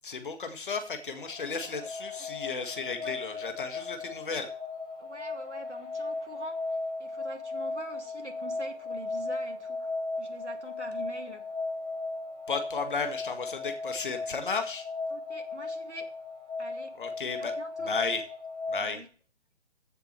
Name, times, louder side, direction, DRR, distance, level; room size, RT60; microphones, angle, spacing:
voice 1, 0.0-4.5 12.5-14.9 17.0-17.5 17.9-18.2 18.7-19.0, left 4 dB, 45° left, 1.8 m, -34 dB
sound 1, 0.8-19.0, left 3 dB, 90° left, 3.5 m, -36 dB
voice 2, 5.0-11.6 15.1-16.2 16.6-17.0 17.4-17.9 18.8-19.1, right 1 dB, 80° right, 2.1 m, -45 dB
15.0 x 7.8 x 3.2 m
figure-of-eight pair, 145°, 34 cm